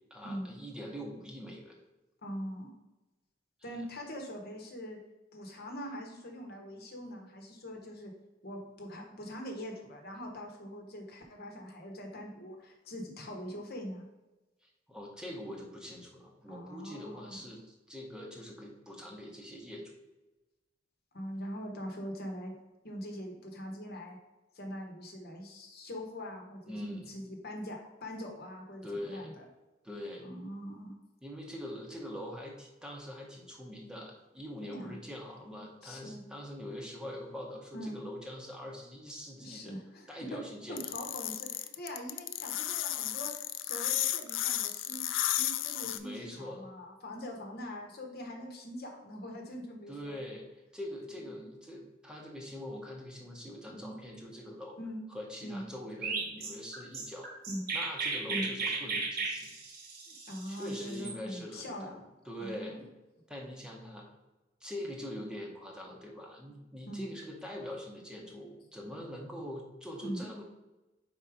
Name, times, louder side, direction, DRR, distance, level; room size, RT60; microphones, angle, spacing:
voice 1, 0.1-1.8 3.6-3.7 14.6-19.9 26.6-27.1 28.8-29.3 29.8-30.3 31.2-39.8 40.1-40.8 45.9-46.7 49.9-50.5 50.7-54.8 55.1-57.3 57.7-59.5 60.4-62.8 63.3-64.1 64.6-70.4, left 1 dB, 5° right, -1 dB, 1.0 m, -43 dB
voice 2, 2.2-2.7 3.6-5.0 5.3-8.1 8.4-14.0 16.5-17.4 21.1-22.5 22.8-24.2 24.5-29.4 30.2-30.9 34.6-35.0 35.8-36.2 37.7-38.0 39.4-40.4 40.7-50.2 51.2-51.5 53.7-54.0 54.8-55.0 55.4-55.6 57.5-57.7 58.3-58.5 60.3-62.0 62.4-62.8 66.9-67.1 70.0-70.3, equal, 55° left, 2 dB, 1.2 m, -42 dB
sound 1, 40.8-46.0, left 13 dB, 75° left, 0.4 m, -33 dB
Chirp tweet, 56.0-61.2, right 4 dB, 55° right, 1.3 m, -35 dB
4.8 x 4.2 x 4.9 m, 1.1 s
head